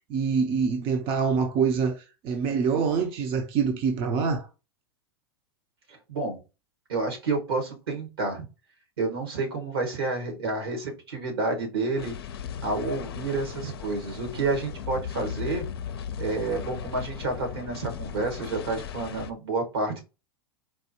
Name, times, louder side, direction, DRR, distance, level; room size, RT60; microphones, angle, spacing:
voice 1, 0.1-4.5, right 5 dB, 40° right, 0.7 m, -25 dB
voice 2, 5.9-6.4 6.9-8.4 9.0-12.1 12.6-15.7 16.2-20.0, right 3 dB, 75° right, 1.5 m, -29 dB
sound 1, 12.0-19.3, left 8 dB, 75° left, 0.5 m, -37 dB
4.4 x 2.2 x 2.9 m
hypercardioid pair, 95°, 13 cm